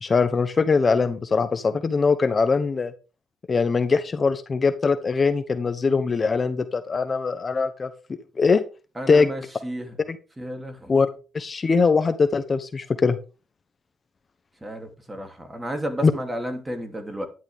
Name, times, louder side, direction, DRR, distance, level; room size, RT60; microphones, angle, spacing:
voice 1, 0.0-2.9 3.5-7.9 8.4-8.6 9.1-9.3 10.1-10.2 10.9-11.1 11.3-13.2 16.0-16.1, left 4 dB, 35° left, 11 dB, 1.0 m, -21 dB
voice 2, 9.0-9.9 10.4-11.1 14.6-17.3, right 1 dB, 15° right, 5 dB, 2.9 m, -32 dB
11.0 x 10.5 x 3.6 m, 0.33 s
cardioid pair, 90°, 0 cm